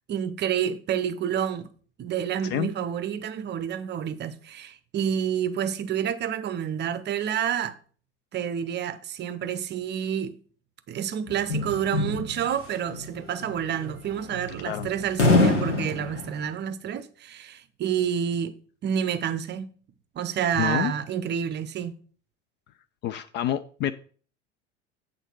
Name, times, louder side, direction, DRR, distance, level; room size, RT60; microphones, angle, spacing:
voice 1, 0.1-1.7 2.0-7.8 8.3-10.4 10.9-18.5 18.8-19.7 20.1-21.9, right 9 dB, 30° right, 0.7 m, -29 dB
sound 1, 11.3-16.5, left 2 dB, 85° left, 1.7 m, -25 dB
voice 2, 20.6-20.9 23.0-23.9, left 11 dB, 30° left, 0.4 m, -27 dB
8.2 x 3.9 x 6.1 m
figure-of-eight pair, 75°, 35 cm